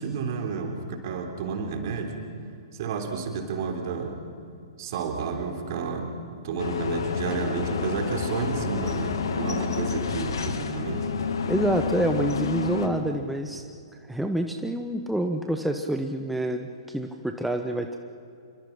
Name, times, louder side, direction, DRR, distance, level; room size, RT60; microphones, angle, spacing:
voice 1, 0.0-2.3 2.7-4.2 4.8-11.1, right 5 dB, 50° right, 4 dB, 3.5 m, -31 dB
sound 1, 6.6-12.9, left 5 dB, 65° left, 2.0 m, -29 dB
voice 2, 11.4-13.6 14.1-18.0, right 1 dB, ahead, 5 dB, 1.0 m, -27 dB
27.0 x 24.0 x 5.9 m, 2.5 s
figure-of-eight pair, 110°, 3 cm